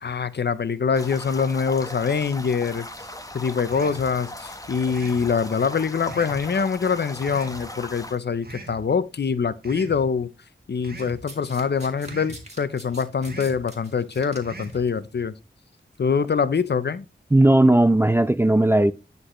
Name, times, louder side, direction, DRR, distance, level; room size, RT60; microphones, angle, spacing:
voice 1, 0.0-2.9 3.3-10.3 10.7-15.3 16.0-17.0, left 6 dB, 65° left, 0.6 m, -24 dB
sound 1, 0.9-8.2, left 1 dB, 20° left, 1.1 m, -38 dB
sound 2, 3.7-4.1 4.9-5.3 6.1-6.4 7.3-7.6 8.4-8.8 9.6-10.0 10.8-11.2 12.0-12.4 13.2-13.6 14.4-14.8, right 2 dB, 55° right, 1.5 m, -39 dB
Domestic sounds home sounds, 11.0-14.9 15.8-16.0, right 1 dB, 35° right, 2.2 m, -44 dB
voice 2, 17.3-18.9, right 1 dB, 10° right, 0.3 m, -16 dB
9.8 x 4.1 x 3.1 m
cardioid pair, 45°, 19 cm